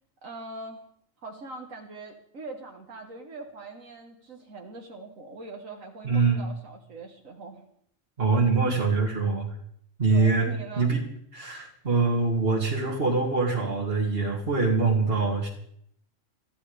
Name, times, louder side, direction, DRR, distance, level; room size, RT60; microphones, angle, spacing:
voice 1, 0.2-0.8 1.2-7.6 10.1-10.9, right 3 dB, 80° right, 1 dB, 2.0 m, -42 dB
voice 2, 6.0-6.4 8.2-9.5 10.0-10.5 10.8-11.0 11.3-15.5, right 4 dB, 45° right, -3 dB, 2.5 m, -24 dB
22.5 x 14.0 x 3.5 m, 0.69 s
omnidirectional pair, 1.4 m